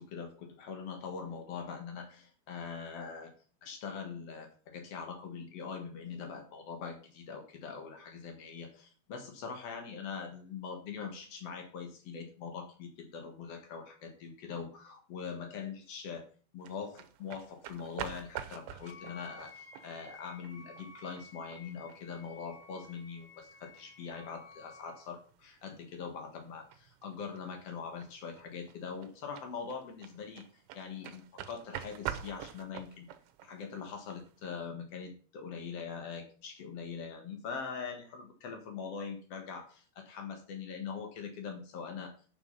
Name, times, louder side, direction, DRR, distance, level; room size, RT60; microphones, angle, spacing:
voice 1, 0.0-3.3 3.6-16.3 16.5-33.1 33.4-42.1, left 6 dB, 90° left, 3 dB, 1.3 m, -42 dB
sound 1, 16.6-34.5, right 11 dB, 85° right, 3.3 m, -47 dB
Wind instrument woodwind instrument, 18.8-25.1, left 3 dB, 20° left, 3.5 m, -54 dB
8.4 x 7.2 x 5.5 m, 0.40 s
omnidirectional pair, 5.4 m